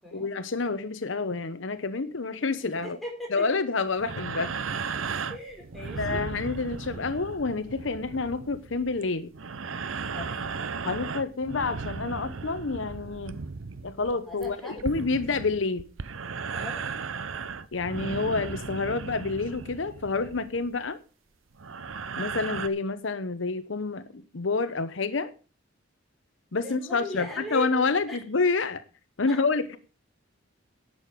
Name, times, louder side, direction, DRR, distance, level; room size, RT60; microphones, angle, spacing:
voice 1, 0.1-3.0 3.3-4.5 6.0-9.3 10.8-13.4 13.8-15.8 17.7-21.0 22.2-25.3 26.5-28.8 29.2-29.8, left 4 dB, 70° left, 0.9 m, -28 dB
voice 2, 2.8-3.4 5.3-6.2 10.1-10.6 14.3-14.8 16.5-16.8 26.6-28.2 29.3-29.4, left 1 dB, ahead, 5.0 m, -38 dB
sound 1, 4.0-20.8 21.5-22.7, right 5 dB, 85° right, 0.8 m, -36 dB
11.5 x 8.6 x 5.2 m
head